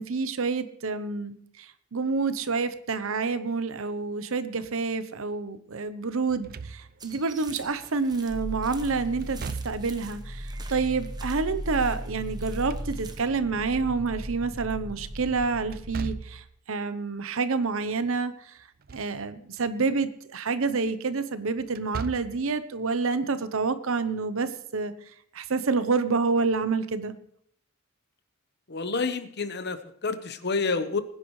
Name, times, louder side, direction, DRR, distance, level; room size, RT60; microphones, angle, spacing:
voice 1, 0.0-18.6 18.9-24.9 25.3-27.1, right 4 dB, 70° right, 12 dB, 0.8 m, -28 dB
Slam / Thump thud, 6.3-7.2 9.2-10.1 12.4-13.4 15.7-16.5 18.6-19.2 19.6-19.7 21.7-22.5, right 4 dB, 45° right, 0.5 m, -38 dB
sound 1, 7.0-13.3, right 4 dB, 20° right, 1.0 m, -48 dB
sound 2, 8.3-16.1, equal, 90° right, 2.1 m, -37 dB
voice 2, 28.7-31.0, left 4 dB, 55° left, 11 dB, 1.0 m, -29 dB
20.5 x 9.9 x 3.2 m, 0.67 s
head